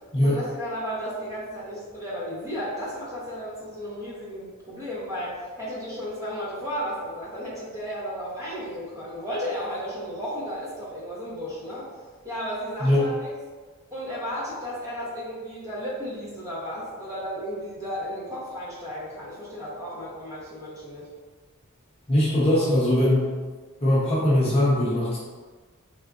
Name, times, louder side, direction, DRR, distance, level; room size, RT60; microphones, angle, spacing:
voice 1, 0.2-11.9 12.2-13.3 13.9-21.1, equal, 15° right, -8 dB, 0.8 m, -34 dB
voice 2, 22.1-23.3 23.8-25.2, left 1 dB, 25° left, -7 dB, 0.6 m, -21 dB
3.5 x 2.5 x 2.3 m, 1.4 s
head